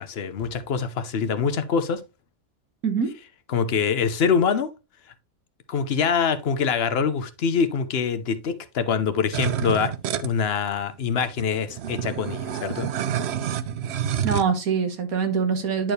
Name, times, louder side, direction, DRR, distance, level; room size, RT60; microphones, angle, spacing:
voice 1, 0.0-2.0 3.5-4.7 5.7-9.9 10.2-12.9, left 6 dB, 50° left, 1.0 m, -24 dB
sound 1, 9.3-10.3 11.0-11.1 11.3-14.4, right 9 dB, 60° right, 0.7 m, -28 dB
voice 2, 14.2-15.9, right 6 dB, 85° right, 1.8 m, -24 dB
10.5 x 4.5 x 3.2 m
omnidirectional pair, 1.5 m